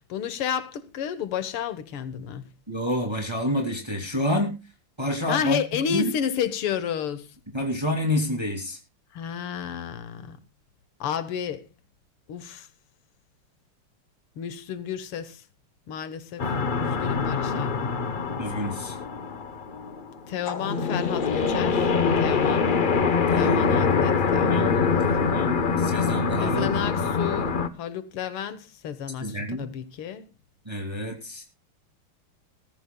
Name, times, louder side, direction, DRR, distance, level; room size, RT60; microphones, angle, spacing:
voice 1, 0.0-2.4 5.3-7.3 9.1-10.4 11.0-11.7 12.3-12.7 14.4-15.4 15.9-16.5 16.8-17.9 20.3-22.7 23.4-24.8 26.4-30.3, left 8 dB, 90° left, 2.1 m, -31 dB
voice 2, 2.7-4.6 5.0-6.1 7.5-8.8 18.4-19.0 23.3-23.9 24.4-26.7 29.2-29.7 30.7-31.4, equal, 10° right, 2.4 m, -28 dB
sound 1, 16.4-27.7, left 5 dB, 70° left, 0.4 m, -24 dB
20.0 x 14.0 x 2.2 m
omnidirectional pair, 2.3 m